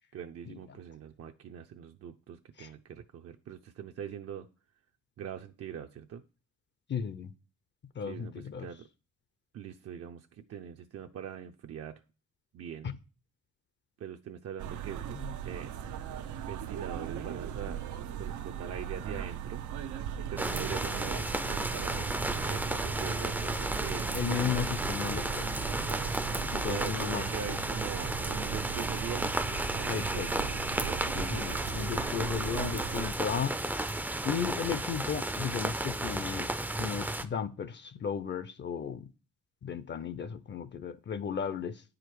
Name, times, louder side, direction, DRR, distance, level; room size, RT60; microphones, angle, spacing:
voice 1, 0.1-4.5 5.2-6.2 8.0-8.9 9.5-12.0 12.5-12.9 14.0-15.7 16.5-17.8 18.2-19.6 20.3-24.1 26.5-29.3 29.7-30.6 31.1-31.5 31.8-32.0, right 8 dB, 55° right, 0.6 m, -42 dB
voice 2, 6.9-7.3 8.0-8.7 12.8-13.0 24.1-25.5 26.5-27.2 29.9-30.3 31.1-33.9 34.2-36.5 36.8-39.0 39.6-41.8, left 7 dB, 40° left, 0.6 m, -35 dB
sound 1, 14.6-33.1, right 9 dB, 90° right, 0.8 m, -39 dB
sound 2, 20.4-37.3, right 1 dB, 5° right, 0.5 m, -33 dB
sound 3, 20.4-27.7, right 6 dB, 70° right, 1.1 m, -48 dB
9.7 x 5.0 x 4.7 m
cardioid pair, 145°, 29 cm